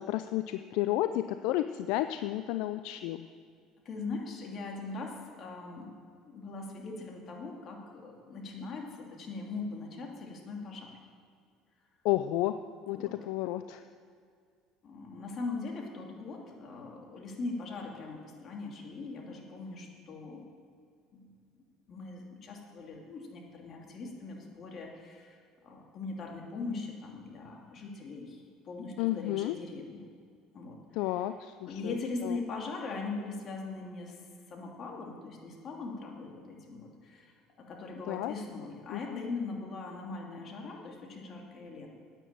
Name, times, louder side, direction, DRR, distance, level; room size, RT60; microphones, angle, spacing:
voice 1, 0.0-3.3 12.0-13.8 29.0-29.6 30.9-32.4 38.1-38.3 38.9-39.2, left 14 dB, 75° left, 11 dB, 0.4 m, -32 dB
voice 2, 3.8-5.9 6.2-10.9 12.9-13.1 14.8-20.5 21.1-21.3 21.9-25.4 25.6-30.0 30.5-30.8 31.7-34.1 34.5-37.3 37.7-41.9, left 3 dB, 45° left, 0 dB, 2.9 m, -40 dB
10.0 x 9.1 x 8.8 m, 2.2 s
supercardioid pair, 85°, 0 cm